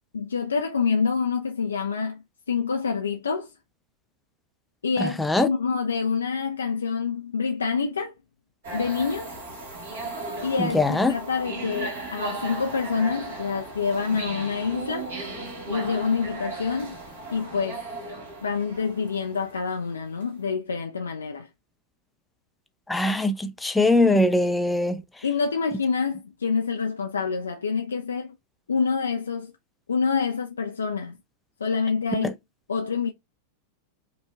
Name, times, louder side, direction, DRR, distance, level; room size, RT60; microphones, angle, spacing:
voice 1, 0.1-2.2 2.5-3.5 4.8-8.1 8.7-9.4 10.4-15.1 15.7-17.0 17.3-17.8 18.4-21.5 25.2-28.4 28.7-29.5 29.9-31.2 31.6-32.4 32.7-33.1, left 5 dB, 70° left, 0.4 m, -27 dB
sound 1, 8.6-20.2, right 2 dB, 60° right, 2.2 m, -36 dB
voice 2, 10.6-11.1 22.9-25.0 32.2-32.3, left 2 dB, 5° left, 0.5 m, -21 dB
5.2 x 2.3 x 3.2 m
figure-of-eight pair, 90°, 0 cm